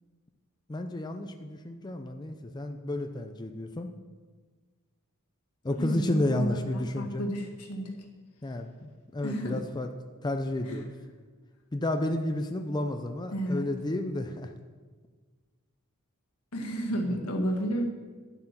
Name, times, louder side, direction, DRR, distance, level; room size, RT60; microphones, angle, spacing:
voice 1, 0.7-3.9 5.6-7.2 8.4-9.9 10.2-10.9 11.7-14.5, left 1 dB, 20° left, 5 dB, 0.5 m, -31 dB
voice 2, 5.8-8.0 9.2-9.6 10.7-10.8 13.3-13.7 16.5-17.9, right 1 dB, 80° left, 2 dB, 1.8 m, -32 dB
11.0 x 7.7 x 5.9 m, 1.5 s
head